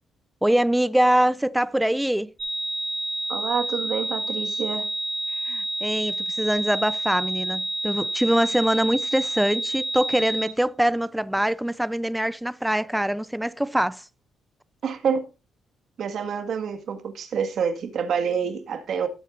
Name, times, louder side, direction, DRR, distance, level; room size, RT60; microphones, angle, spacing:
voice 1, 0.4-2.3 5.5-14.0, right 1 dB, 5° right, 0.5 m, -23 dB
sound 1, 2.4-10.5, right 1 dB, 30° right, 3.3 m, -29 dB
voice 2, 3.3-4.9 14.8-15.2 16.0-19.1, right 6 dB, 65° right, 1.7 m, -27 dB
18.0 x 8.1 x 2.5 m
cardioid pair, 90°, 0 cm